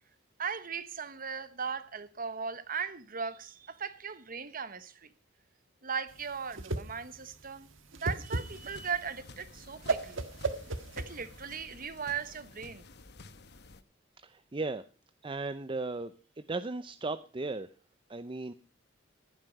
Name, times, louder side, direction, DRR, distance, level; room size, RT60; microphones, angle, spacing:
voice 1, 0.4-5.1 5.8-10.2 11.0-12.9, right 6 dB, 45° right, 1.2 m, -38 dB
Whoosh swoosh swish, 6.1-11.6, right 3 dB, 85° right, 1.6 m, -35 dB
sound 1, 8.3-13.8, left 3 dB, 60° left, 1.2 m, -52 dB
voice 2, 14.2-14.8 15.2-17.7 18.1-18.5, right 3 dB, 25° right, 0.6 m, -36 dB
14.5 x 11.5 x 5.3 m
head